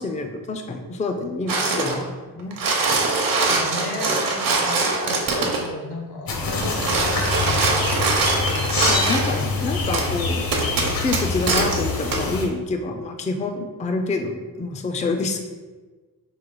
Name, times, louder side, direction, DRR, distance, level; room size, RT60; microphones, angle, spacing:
voice 1, 0.0-2.6 8.9-10.5 10.8-15.4, left 3 dB, 20° left, 5 dB, 0.3 m, -27 dB
sound 1, 1.5-2.0 2.4-5.7 6.5-9.4 9.9-10.1 10.5-11.8 12.1-12.2, right 3 dB, 60° right, 0.8 m, -22 dB
voice 2, 2.9-7.7, left 2 dB, 85° left, 0 dB, 1.1 m, -34 dB
sound 2, 6.3-12.5, left 4 dB, 65° left, 0.8 m, -25 dB
4.7 x 2.7 x 3.8 m, 1.3 s
wide cardioid pair, 110°, 38 cm